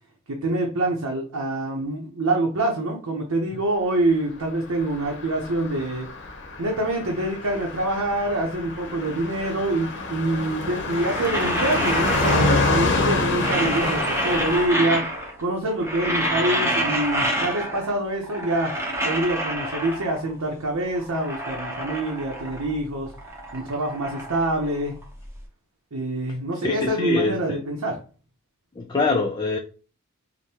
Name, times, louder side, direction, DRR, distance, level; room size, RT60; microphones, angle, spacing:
voice 1, 0.4-6.1 6.6-15.0 15.4-18.7 19.0-24.9 25.9-28.0, right 2 dB, 85° right, 0 dB, 0.8 m, -25 dB
Car passing by, 4.7-14.7, left 3 dB, 55° left, 0.8 m, -27 dB
sound 1, 10.8-13.0 13.2-15.4 15.7-18.0 18.2-20.3 20.8-22.8 23.1-25.3, right 1 dB, 10° right, 0.7 m, -28 dB
voice 2, 26.6-27.6 28.8-29.6, left 3 dB, 20° left, 2 dB, 0.3 m, -24 dB
5.1 x 2.2 x 2.8 m, 0.37 s
head